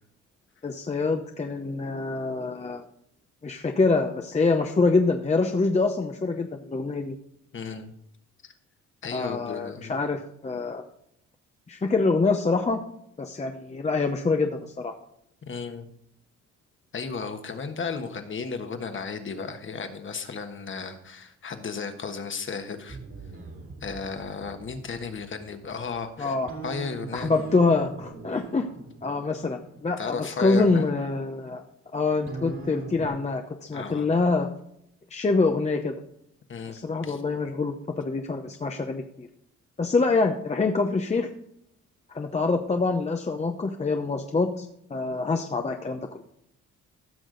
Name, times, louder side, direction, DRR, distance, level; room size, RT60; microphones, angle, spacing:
voice 1, 0.6-2.8 3.4-7.1 9.1-10.8 11.7-12.8 13.2-14.9 26.2-26.5 27.1-28.7 29.0-31.6 31.9-34.5 35.1-35.9 36.7-39.3 39.8-41.3 42.1-46.2, left 3 dB, 20° left, 4 dB, 0.8 m, -25 dB
voice 2, 7.5-7.9 8.4-8.5 9.0-9.9 15.4-15.9 16.9-23.0 23.8-26.4 26.6-27.4 30.0-30.9 33.7-34.1 36.5-37.2, left 5 dB, 40° left, 7 dB, 1.4 m, -34 dB
sound 1, 22.9-31.1 32.3-33.1, right 4 dB, 45° right, 2.3 m, -42 dB
15.5 x 6.1 x 3.9 m, 0.74 s
cardioid pair, 90°, 30 cm